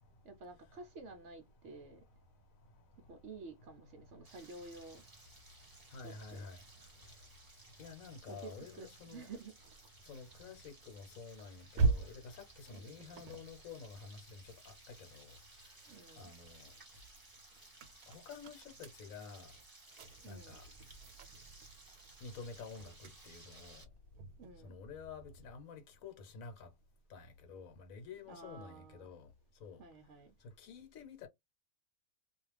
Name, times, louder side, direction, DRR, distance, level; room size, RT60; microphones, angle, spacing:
voice 1, 0.2-2.0 3.1-5.0 6.0-6.5 8.3-9.6 12.7-13.0 15.9-16.3 20.2-20.6 24.4-24.8 28.3-29.1 29.8-30.3, right 3 dB, 65° right, 0.8 m, -51 dB
voice 2, 2.6-3.1 4.0-4.4 5.6-7.3 7.8-9.3 10.0-15.8 16.2-16.7 18.1-19.6 20.2-20.7 22.2-23.9 24.6-26.7 27.1-29.3 29.6-29.8 30.4-31.3, left 5 dB, 70° left, 1.1 m, -51 dB
Frying (food), 4.2-23.8, right 2 dB, 20° right, 0.6 m, -59 dB
sound 1, 8.9-15.4 15.9-25.7, right 4 dB, 85° right, 1.1 m, -42 dB
2.4 x 2.2 x 3.2 m
omnidirectional pair, 1.5 m